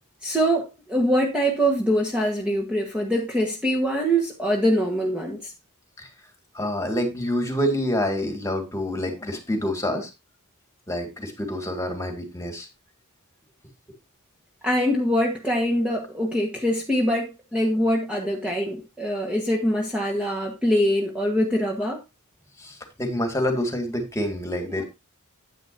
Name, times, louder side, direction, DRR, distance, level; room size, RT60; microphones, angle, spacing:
voice 1, 0.2-5.5 14.6-22.0, equal, 5° right, 1.3 m, -23 dB
voice 2, 6.6-10.1 10.9-12.7 22.6-24.8, left 1 dB, 15° left, 2.1 m, -27 dB
10.0 x 8.9 x 2.6 m
head